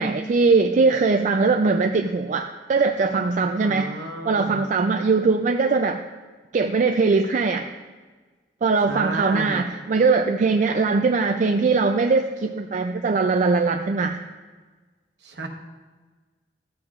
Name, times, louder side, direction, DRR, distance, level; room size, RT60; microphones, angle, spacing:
voice 1, 0.0-3.9 4.2-6.0 6.5-7.7 8.6-14.2, right 4 dB, 45° right, 6 dB, 0.3 m, -21 dB
voice 2, 3.6-4.6 8.9-9.6 15.2-15.5, right 2 dB, 70° right, 3 dB, 1.1 m, -32 dB
13.5 x 8.0 x 2.4 m, 1.3 s
head